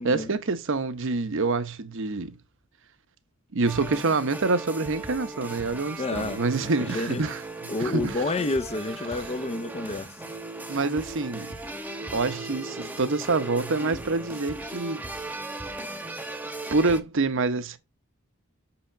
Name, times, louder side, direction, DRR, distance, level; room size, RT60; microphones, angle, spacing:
voice 1, 0.0-2.4 3.5-7.4 7.8-8.2 9.1-9.2 9.9-10.1 10.7-11.6 12.1-15.0 16.7-17.8, right 3 dB, 65° right, 0.9 m, -26 dB
sound 1, 3.7-17.0, right 2 dB, 10° right, 1.0 m, -37 dB
voice 2, 6.0-7.2 7.7-10.1, left 3 dB, 30° left, 0.6 m, -30 dB
6.3 x 5.8 x 5.7 m
head